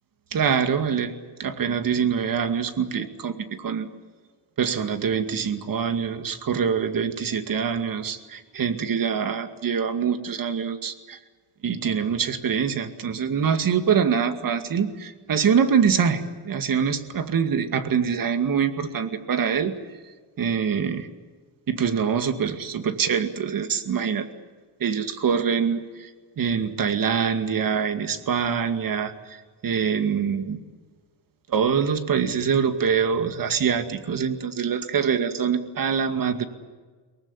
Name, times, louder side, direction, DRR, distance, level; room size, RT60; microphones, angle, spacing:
voice 1, 0.3-1.1 1.4-3.9 4.6-11.2 11.6-19.7 20.4-21.1 21.7-24.3 24.8-26.1 26.4-29.4 29.6-30.6 31.5-36.5, right 7 dB, 45° right, 9 dB, 2.3 m, -24 dB
23.5 x 19.0 x 9.9 m, 1.4 s
cardioid pair, 95°, 44 cm